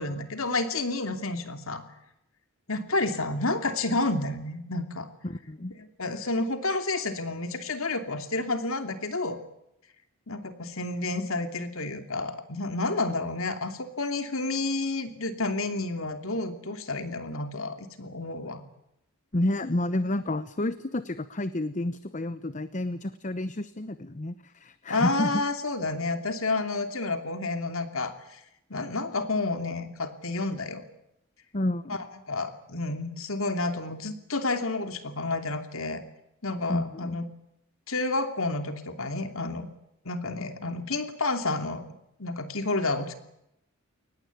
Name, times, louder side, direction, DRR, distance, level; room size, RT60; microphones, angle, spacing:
voice 1, 0.0-1.8 2.7-5.1 5.8-9.4 10.3-18.6 24.9-28.4 28.7-30.8 32.3-36.0 36.4-37.3 37.9-39.7 40.0-41.8 42.2-43.1, left 2 dB, 65° left, 8 dB, 2.9 m, -30 dB
voice 2, 5.2-5.7 19.3-25.4 31.5-32.0 36.7-37.2, left 1 dB, 35° left, 13 dB, 0.9 m, -30 dB
23.0 x 19.5 x 9.6 m, 0.81 s
head